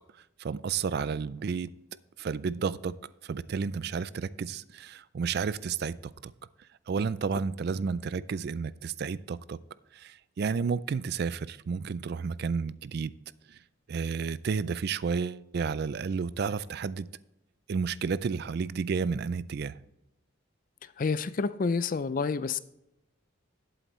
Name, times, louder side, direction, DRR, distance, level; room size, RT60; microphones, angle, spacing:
voice 1, 0.4-1.7 2.2-2.9 3.2-6.0 6.2-6.3 6.9-9.6 9.9-13.1 13.5-13.6 13.9-17.1 17.7-19.8, right 5 dB, 50° right, 0.3 m, -31 dB
voice 2, 21.0-22.6, left 4 dB, 40° left, 0.4 m, -28 dB
12.0 x 7.9 x 3.1 m
head